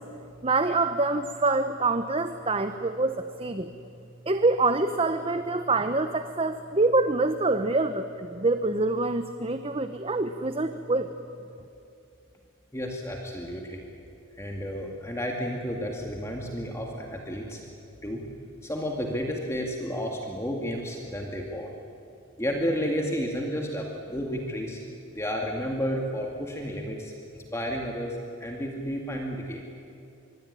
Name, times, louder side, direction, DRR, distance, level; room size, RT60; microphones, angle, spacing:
voice 1, 0.4-3.7 4.3-11.1, right 3 dB, 25° right, 9 dB, 0.8 m, -26 dB
voice 2, 12.7-13.8 14.4-17.6 18.0-18.3 18.6-21.7 22.4-24.8 25.1-29.6, equal, 15° left, 0 dB, 2.2 m, -32 dB
24.5 x 24.0 x 10.0 m, 2.7 s
head